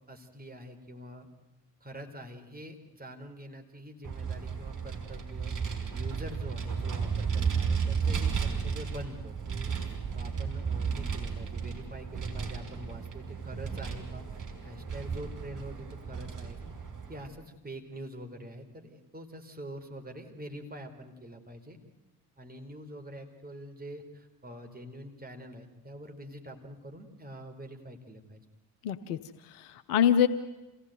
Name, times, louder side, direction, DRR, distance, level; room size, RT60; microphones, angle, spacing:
voice 1, 0.1-1.3 1.8-5.5 5.9-9.7 10.1-16.7 17.1-21.8 22.4-28.4, equal, 20° right, 4 dB, 4.5 m, -45 dB
Vehicle, 4.0-17.3, right 6 dB, 40° right, 5.3 m, -33 dB
voice 2, 28.8-30.3, left 9 dB, 75° left, 11 dB, 1.0 m, -26 dB
27.5 x 17.0 x 9.4 m, 1.0 s
figure-of-eight pair, 45°, 46 cm